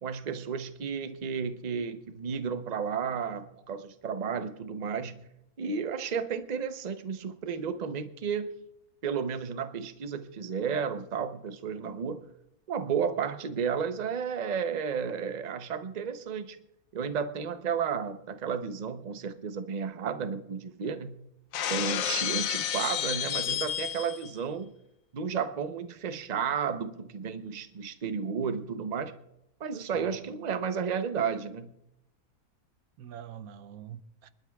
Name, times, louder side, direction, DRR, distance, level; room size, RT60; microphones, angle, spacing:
voice 1, 0.0-5.2 5.6-8.6 9.0-12.2 12.7-16.6 16.9-21.2 21.7-24.7 25.1-29.1 29.6-31.7, right 6 dB, 50° right, 0.5 m, -32 dB
Shatter, 21.5-24.3, left 10 dB, 65° left, 1.0 m, -31 dB
voice 2, 29.7-30.1 33.0-34.3, right 9 dB, 70° right, 1.0 m, -45 dB
25.5 x 12.0 x 2.3 m
omnidirectional pair, 1.7 m